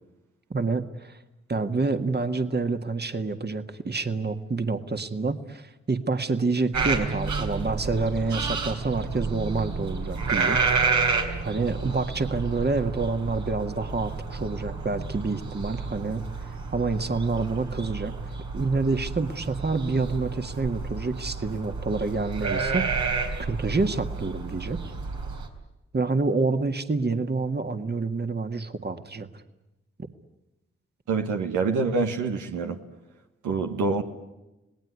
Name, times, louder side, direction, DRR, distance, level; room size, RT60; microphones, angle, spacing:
voice 1, 0.5-1.2 1.5-10.6 11.4-16.2 16.7-18.1 18.5-24.8 25.9-29.3, right 3 dB, 35° right, 8 dB, 1.9 m, -28 dB
sound 1, 6.7-25.5, right 4 dB, 70° right, 3.9 m, -30 dB
voice 2, 31.1-32.8 33.4-34.0, right 4 dB, 90° right, 4 dB, 1.6 m, -26 dB
27.0 x 18.5 x 9.6 m, 0.99 s
supercardioid pair, 40°, 30 cm